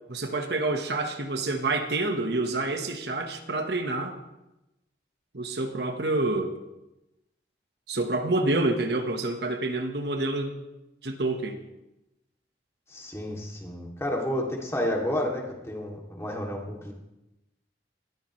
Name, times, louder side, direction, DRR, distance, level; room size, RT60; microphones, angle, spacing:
voice 1, 0.1-4.2 5.3-6.5 7.9-10.6 11.0-11.6, right 2 dB, 65° right, 5 dB, 1.3 m, -28 dB
voice 2, 12.9-16.9, left 1 dB, 15° left, -1 dB, 2.6 m, -31 dB
19.5 x 13.5 x 3.2 m, 0.94 s
head